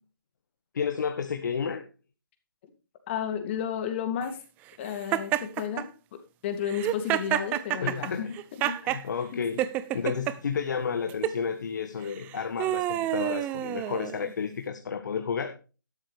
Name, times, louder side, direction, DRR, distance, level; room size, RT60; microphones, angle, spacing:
voice 1, 0.7-1.9 7.8-8.3 8.8-9.6 9.9-15.6, left 6 dB, 55° left, 7 dB, 1.5 m, -31 dB
voice 2, 3.1-4.4 4.8-5.9 6.4-8.3 8.6-8.7 9.3-9.4 9.9-10.0, left 8 dB, 30° left, 7 dB, 2.6 m, -32 dB
Laughter, 5.1-5.8 6.7-9.0 9.6-10.3 11.1-11.4 12.1-14.3, right 14 dB, 15° right, 0.5 m, -29 dB
12.5 x 12.0 x 3.4 m, 0.33 s
figure-of-eight pair, 150°, 12 cm